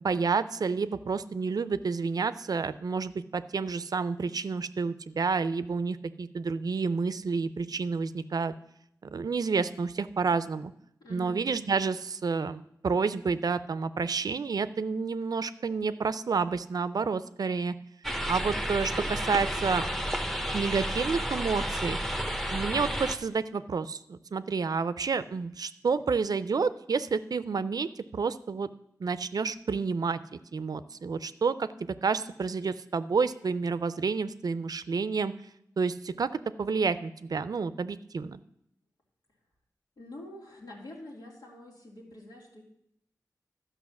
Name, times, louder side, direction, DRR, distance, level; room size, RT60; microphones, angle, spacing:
voice 1, 0.0-8.5 9.0-10.7 11.1-17.7 18.3-19.9 20.5-22.0 22.5-28.7 29.0-35.3 35.8-38.4, right 5 dB, 70° right, 14 dB, 0.5 m, -29 dB
voice 2, 11.0-11.4 40.0-42.6, left 1 dB, 85° left, -3 dB, 2.8 m, -46 dB
sound 1, 18.0-23.2, equal, 5° left, 1.0 m, -31 dB
12.0 x 5.5 x 7.1 m, 0.75 s
cardioid pair, 50°, 7 cm